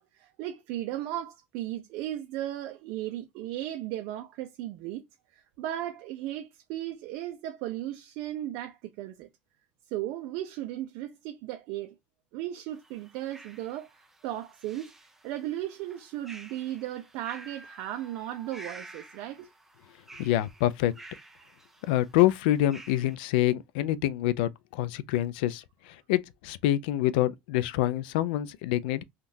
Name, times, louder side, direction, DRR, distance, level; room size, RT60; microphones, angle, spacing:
voice 1, 0.0-5.0 5.3-9.3 9.9-11.9 12.3-13.9 14.2-14.9 15.2-19.5, right 13 dB, 60° right, 0.5 m, -36 dB
sound 1, 12.7-23.2, right 2 dB, 5° right, 0.5 m, -51 dB
voice 2, 20.2-20.9 21.9-25.6 26.1-29.0, left 14 dB, 90° left, 0.3 m, -26 dB
3.6 x 2.3 x 2.6 m
cardioid pair, 160°, 5 cm